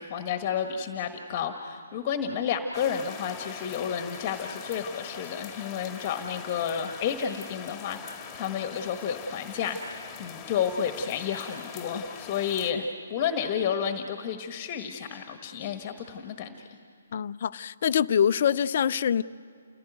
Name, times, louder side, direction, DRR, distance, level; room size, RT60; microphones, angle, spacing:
voice 1, 0.0-16.6, left 7 dB, 30° left, 1.5 m, -31 dB
sound 1, 2.7-12.7, left 7 dB, 15° left, 2.1 m, -43 dB
voice 2, 17.1-19.2, left 8 dB, 50° left, 0.5 m, -24 dB
29.5 x 16.5 x 9.3 m
figure-of-eight pair, 135°, 0 cm